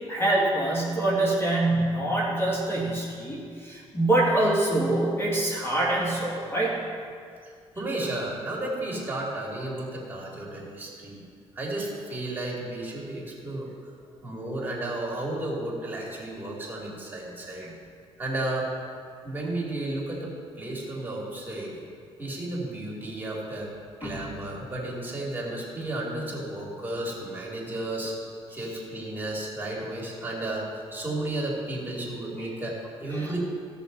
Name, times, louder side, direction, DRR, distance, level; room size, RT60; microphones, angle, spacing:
voice 1, 0.0-6.8 17.6-17.7 24.0-24.2 33.1-33.3, right 1 dB, 20° left, -5 dB, 2.0 m, -25 dB
voice 2, 7.7-11.2 11.5-13.7 14.2-17.7 18.2-18.7 19.2-20.3 20.6-21.8 22.2-23.7 24.0-28.1 28.5-33.4, right 1 dB, 15° right, -4 dB, 2.8 m, -33 dB
16.0 x 6.5 x 4.1 m, 2.2 s
cardioid pair, 100°, 11 cm